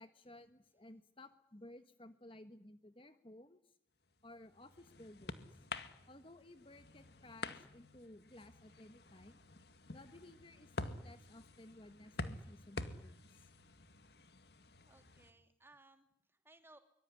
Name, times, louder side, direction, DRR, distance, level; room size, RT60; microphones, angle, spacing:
voice 1, 0.0-3.8 4.2-5.7 6.1-9.4 9.9-13.5, left 1 dB, 30° left, 10 dB, 1.4 m, -57 dB
sound 1, 4.2-15.3, left 2 dB, 60° left, 2.1 m, -49 dB
voice 2, 14.9-16.8, right 2 dB, 10° right, 7 dB, 3.2 m, -63 dB
24.5 x 24.5 x 9.9 m, 0.70 s
head